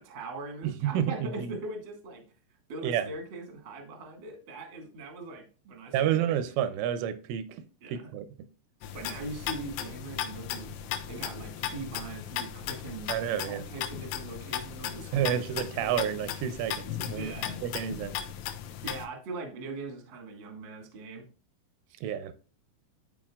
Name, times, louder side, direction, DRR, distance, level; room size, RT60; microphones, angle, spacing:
voice 1, 0.0-2.2 2.7-6.2 7.8-8.1 8.9-15.4 15.8-16.2 17.1-17.6 18.8-21.2 21.9-22.0, right 3 dB, 70° right, 1.0 m, -41 dB
voice 2, 0.6-1.3 2.8-3.1 5.9-7.6 7.9-8.3 13.1-13.6 15.1-17.4 17.6-18.1 22.0-22.3, right 10 dB, 85° right, 3.1 m, -29 dB
sound 1, 8.8-19.1, left 10 dB, 90° left, 3.3 m, -37 dB
13.0 x 4.5 x 2.3 m
omnidirectional pair, 5.5 m